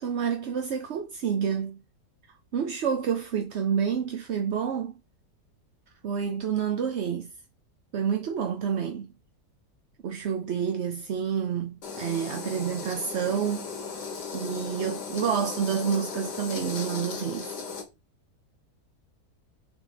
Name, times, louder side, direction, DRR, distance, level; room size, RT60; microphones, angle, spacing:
voice 1, 0.0-1.8 2.5-4.9 6.0-7.3 7.9-9.1 10.0-13.7 14.3-17.5, right 7 dB, 55° right, 0.8 m, -28 dB
sound 1, 11.8-17.8, left 5 dB, 75° left, 2.1 m, -36 dB
7.1 x 3.6 x 4.9 m
omnidirectional pair, 1.8 m